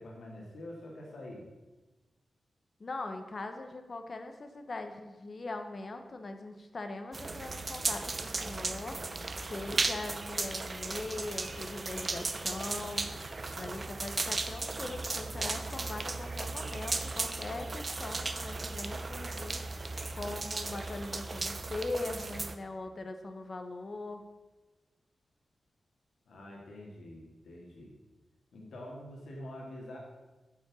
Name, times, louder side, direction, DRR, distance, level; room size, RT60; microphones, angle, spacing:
voice 1, 0.0-1.4 26.3-28.0 28.5-30.0, left 1 dB, 90° left, -2 dB, 2.9 m, -46 dB
voice 2, 2.8-24.2, left 2 dB, 40° left, 6 dB, 1.2 m, -41 dB
sound 1, 7.1-22.6, right 3 dB, 35° right, 0.7 m, -36 dB
9.7 x 7.4 x 6.4 m, 1.1 s
wide cardioid pair, 135°, 0 cm